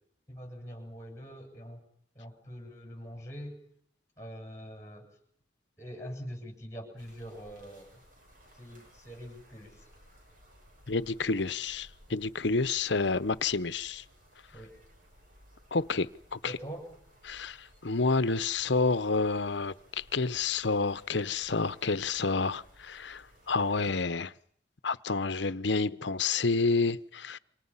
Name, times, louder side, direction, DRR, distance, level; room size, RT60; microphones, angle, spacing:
voice 1, 0.3-1.8 2.1-3.6 4.2-5.1 5.8-7.9 8.6-9.9 14.5-14.7 16.4-16.9, equal, 15° left, 7.6 m, -44 dB
sound 1, 7.0-23.9, equal, 45° right, 7.0 m, -59 dB
voice 2, 10.9-14.0 15.7-16.5 17.2-24.3 24.8-27.4, left 4 dB, 75° left, 0.9 m, -29 dB
29.0 x 25.5 x 5.7 m
head